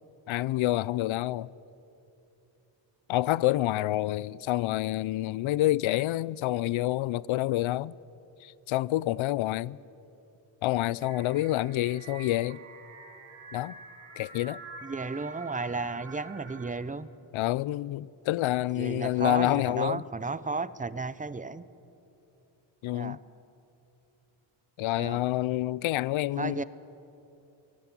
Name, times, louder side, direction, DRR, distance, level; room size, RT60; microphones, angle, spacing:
voice 1, 0.3-1.5 3.1-7.9 8.4-9.8 10.6-12.6 13.5-13.8 14.2-14.6 17.3-20.0 22.8-23.2 24.8-26.6, left 15 dB, 80° left, 0.6 m, -28 dB
sound 1, 11.0-16.7, right 4 dB, 85° right, 4.3 m, -47 dB
voice 2, 14.8-17.1 18.8-21.6 22.9-23.2 25.0-25.2 26.4-26.6, right 3 dB, 15° right, 0.7 m, -33 dB
23.0 x 17.5 x 9.7 m
cardioid pair, 105°, 47 cm